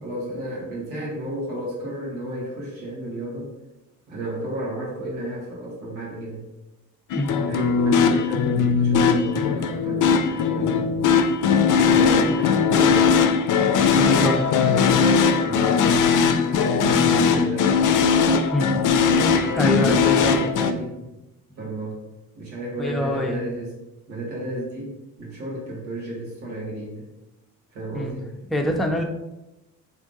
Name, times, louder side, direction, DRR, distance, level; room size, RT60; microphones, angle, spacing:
voice 1, 0.0-3.5 4.1-6.4 7.5-10.9 11.9-13.2 13.8-17.7 18.9-21.0 21.5-22.0 22.4-23.7 24.1-27.1 27.7-28.3, right 1 dB, 90° right, -4 dB, 1.2 m, -32 dB
sound 1, 7.1-20.7, left 6 dB, 50° left, 0.5 m, -19 dB
voice 2, 13.9-14.3 18.5-18.8 19.6-20.4 22.8-23.5 27.9-28.1 28.5-29.0, left 1 dB, ahead, 1 dB, 0.6 m, -24 dB
3.5 x 2.8 x 3.6 m, 0.96 s
hypercardioid pair, 45°, 41 cm